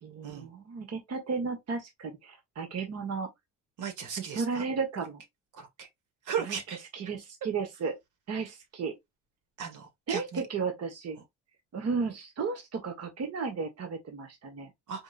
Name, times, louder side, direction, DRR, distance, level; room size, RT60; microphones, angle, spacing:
voice 1, 0.0-3.3 4.2-5.2 6.4-6.6 6.9-8.0 8.3-8.9 10.1-11.2 11.7-14.7, right 5 dB, 55° right, 1.5 m, -34 dB
voice 2, 3.8-4.7 5.5-5.9 6.3-6.8 9.6-10.4 14.9-15.0, right 7 dB, 70° right, 1.7 m, -36 dB
5.1 x 4.1 x 2.5 m
cardioid pair, 110°, 31 cm